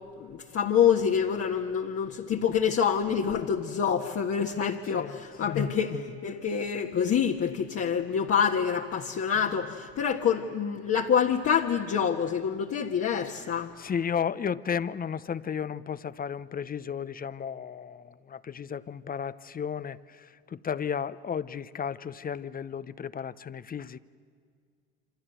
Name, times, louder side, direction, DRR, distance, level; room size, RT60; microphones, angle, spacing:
voice 1, 0.2-13.7, left 7 dB, 45° left, 1 dB, 1.6 m, -26 dB
voice 2, 5.0-5.6 13.8-24.0, left 7 dB, 25° left, 17 dB, 0.8 m, -34 dB
27.5 x 26.5 x 8.0 m, 2.1 s
hypercardioid pair, 70°, 32 cm